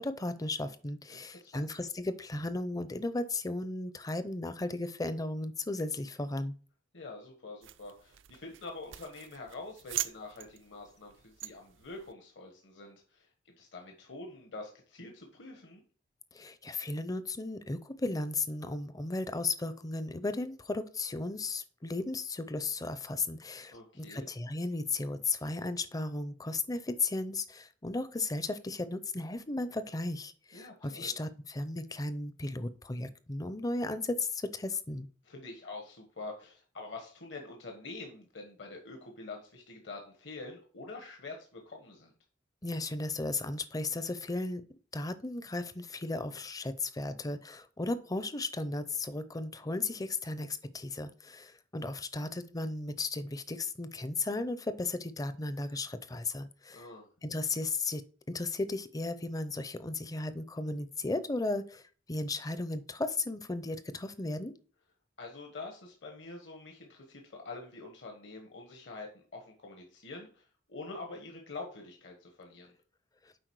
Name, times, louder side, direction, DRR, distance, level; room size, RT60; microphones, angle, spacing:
voice 1, 0.0-6.5 16.3-35.1 42.6-44.6 44.9-56.9 57.2-64.5, left 2 dB, 20° left, 12 dB, 0.5 m, -35 dB
voice 2, 1.1-1.7 6.9-15.8 23.7-24.3 30.5-31.1 35.2-42.1 56.7-57.1 65.2-72.7, left 3 dB, 65° left, 2 dB, 1.4 m, -46 dB
sound 1, 7.6-12.1, right 13 dB, 75° right, 0.5 m, -42 dB
7.8 x 4.8 x 4.7 m, 0.41 s
head